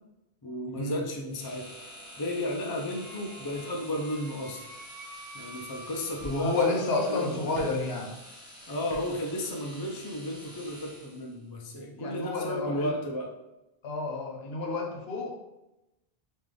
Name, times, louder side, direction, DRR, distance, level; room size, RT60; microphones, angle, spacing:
voice 1, 0.4-1.6 2.2-4.7 5.3-7.4 8.7-13.3, left 1 dB, 30° left, 1 dB, 0.4 m, -33 dB
sound 1, 1.3-11.4, equal, 5° right, 0.7 m, -48 dB
Wind instrument woodwind instrument, 2.9-7.1, right 2 dB, 65° right, 0.8 m, -48 dB
voice 2, 6.2-8.1 11.9-12.9 13.8-15.3, left 3 dB, 75° left, 0 dB, 1.0 m, -30 dB
sound 2, 6.2-6.8 7.5-7.9 8.8-9.2 9.4-9.5, right 1 dB, 30° right, 0.9 m, -44 dB
3.3 x 3.0 x 3.7 m, 0.93 s
omnidirectional pair, 1.1 m